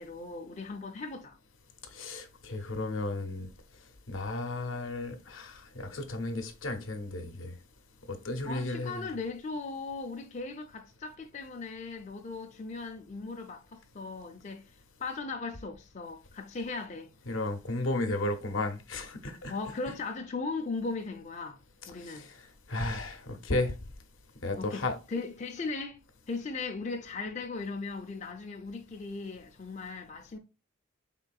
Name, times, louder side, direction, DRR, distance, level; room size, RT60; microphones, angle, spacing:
voice 1, 0.0-1.4 8.4-14.6 15.0-17.1 19.5-21.6 21.9-22.3 24.6-26.0 26.3-30.4, left 3 dB, 35° left, 0.5 m, -38 dB
voice 2, 1.9-3.5 4.1-7.5 8.1-9.0 17.3-19.6 22.0-22.3 22.7-23.7 24.4-24.9, left 2 dB, 75° left, 0.8 m, -34 dB
4.2 x 3.7 x 2.3 m
head